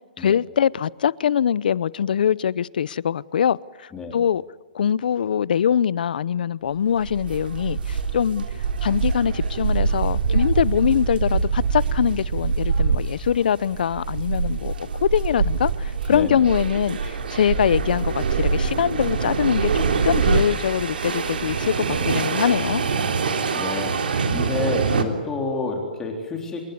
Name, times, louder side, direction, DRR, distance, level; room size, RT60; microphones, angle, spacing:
voice 1, 0.2-4.4 4.7-8.4 8.8-14.7 15.0-19.7 20.0-22.8, left 8 dB, 65° left, 0.7 m, -23 dB
sound 1, 6.9-25.0, right 5 dB, 80° right, 3.4 m, -24 dB
voice 2, 16.1-16.5 23.5-26.6, left 3 dB, 10° left, 3.7 m, -29 dB
27.5 x 21.0 x 9.6 m
hypercardioid pair, 165°, 5 cm